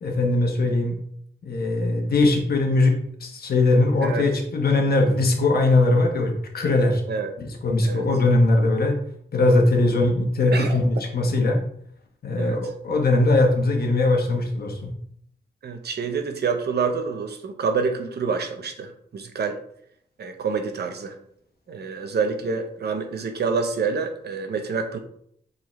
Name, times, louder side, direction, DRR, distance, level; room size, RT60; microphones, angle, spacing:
voice 1, 0.0-1.0 1.4-7.0 7.4-9.0 9.3-11.6 12.2-14.9, left 2 dB, 60° left, 2 dB, 1.3 m, -20 dB
voice 2, 15.6-19.6 20.2-21.1 21.7-25.0, right 5 dB, 65° right, 6 dB, 0.9 m, -27 dB
7.4 x 4.0 x 3.2 m, 0.68 s
wide cardioid pair, 175°, 18 cm